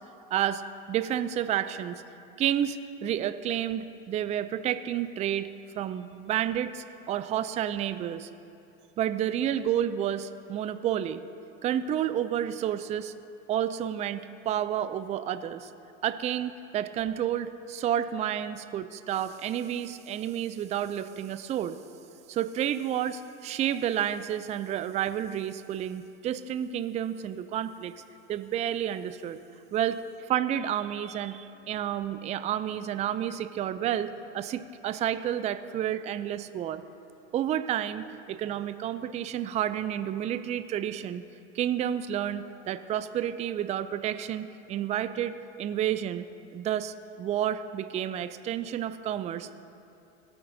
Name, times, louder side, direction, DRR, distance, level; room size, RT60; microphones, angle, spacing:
voice 1, 0.3-0.6 0.9-2.0 2.4-5.5 5.7-8.3 9.0-11.2 11.6-13.1 13.5-15.7 16.0-21.8 22.3-27.9 28.3-29.4 29.7-36.8 37.3-41.2 41.5-46.3 46.5-49.5, right 10 dB, 20° right, 12 dB, 0.3 m, -30 dB
18.0 x 8.7 x 2.7 m, 2.7 s
supercardioid pair, 105°, 32 cm